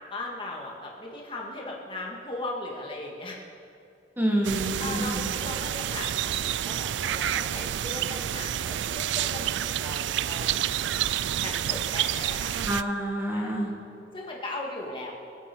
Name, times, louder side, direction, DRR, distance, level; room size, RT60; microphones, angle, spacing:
voice 1, 0.1-3.4 4.8-10.5 11.4-12.7 13.3-13.5 14.1-15.1, left 2 dB, 30° left, -2 dB, 2.2 m, -38 dB
voice 2, 4.2-5.3 12.7-13.8, right 1 dB, 10° right, -1 dB, 1.6 m, -28 dB
sound 1, 4.4-12.8, right 11 dB, 85° right, 0.4 m, -29 dB
26.5 x 9.3 x 4.6 m, 2.5 s
head